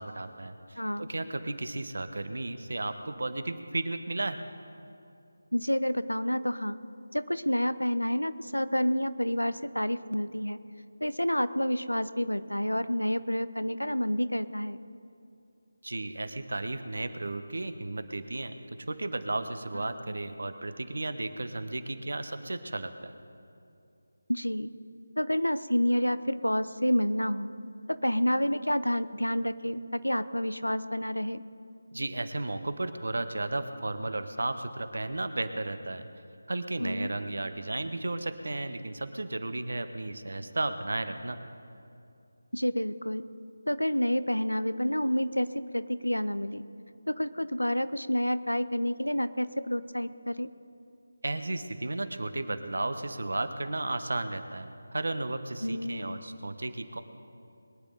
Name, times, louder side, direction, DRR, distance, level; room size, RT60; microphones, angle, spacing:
voice 1, 0.0-4.4 15.8-18.5 18.9-23.1 31.9-36.1 36.5-41.4 51.2-57.0, right 2 dB, 60° right, 10 dB, 1.0 m, -34 dB
voice 2, 0.8-1.1 5.5-6.8 7.1-10.6 11.0-14.8 19.7-19.8 24.3-24.7 25.2-27.5 27.9-31.4 36.8-37.1 42.5-43.2 43.7-45.5 45.7-46.6 47.1-50.5 55.6-56.2, equal, 90° left, 13 dB, 0.7 m, -29 dB
22.5 x 10.0 x 3.9 m, 2.6 s
figure-of-eight pair, 160°, 0 cm